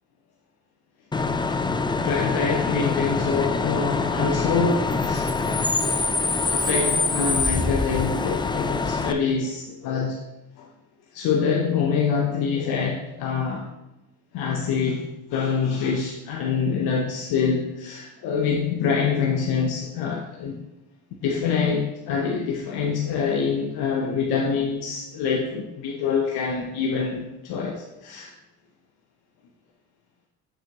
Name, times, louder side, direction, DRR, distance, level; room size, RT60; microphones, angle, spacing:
Bus / Idling / Screech, 1.1-9.1, left 3 dB, 15° left, 0.4 m, -24 dB
voice 1, 2.0-5.2 6.5-10.2 10.6-10.7 11.1-13.7 14.3-20.6 21.2-28.3, left 5 dB, 85° left, 0 dB, 0.8 m, -25 dB
7.0 x 5.6 x 3.0 m, 0.97 s
cardioid pair, 70°, 37 cm